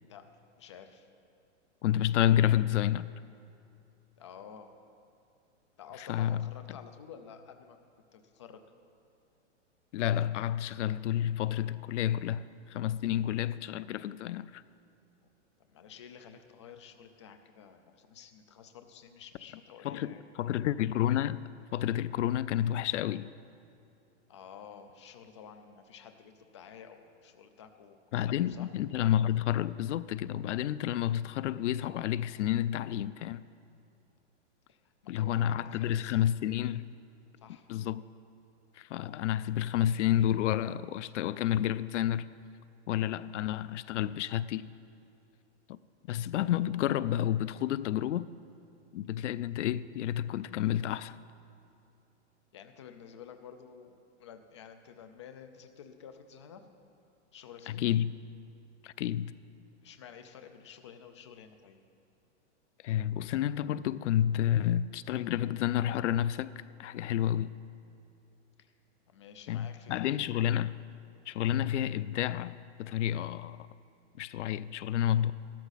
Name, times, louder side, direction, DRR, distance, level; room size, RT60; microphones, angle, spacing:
voice 1, 0.6-1.1 4.2-4.8 5.8-7.8 8.1-8.6 15.6-20.2 24.3-28.7 34.7-36.1 37.4-37.7 52.5-53.9 54.2-56.7 57.3-57.8 59.8-61.8 68.6-68.7 69.1-70.1, left 7 dB, 25° left, 0.4 m, -51 dB
voice 2, 1.8-3.1 6.0-6.5 9.9-14.6 19.8-21.4 21.7-23.3 28.1-33.4 35.1-36.9 37.7-38.0 38.7-42.3 42.9-44.7 45.7-45.8 46.1-48.3 48.9-51.2 57.7-58.1 58.8-59.3 62.8-67.5 69.5-70.8 71.3-73.7 74.2-75.3, left 11 dB, 80° left, 0.5 m, -30 dB
14.5 x 13.0 x 4.0 m
supercardioid pair, 175°, 35 cm